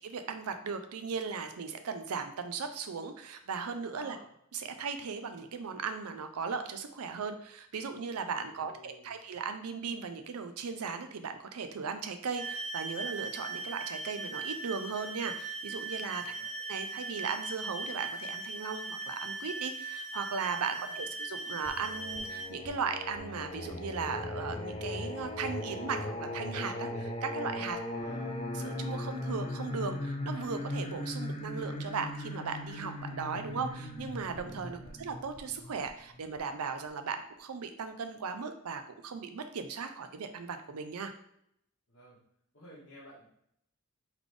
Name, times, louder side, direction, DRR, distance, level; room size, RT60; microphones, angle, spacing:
voice 1, 0.0-4.2 4.5-16.3 16.7-27.8 28.5-41.1, right 5 dB, 90° right, 8 dB, 0.5 m, -37 dB
voice 2, 3.9-4.3 8.5-9.2 16.1-16.5 20.7-21.1 27.7-28.5 34.6-34.9 41.9-42.2 42.5-43.2, equal, 50° left, -7 dB, 1.3 m, -54 dB
sound 1, 12.3-22.5, right 3 dB, 30° right, 1.2 m, -39 dB
Singing, 21.7-36.4, left 1 dB, 25° left, 0.4 m, -38 dB
4.0 x 3.3 x 3.3 m, 0.73 s
head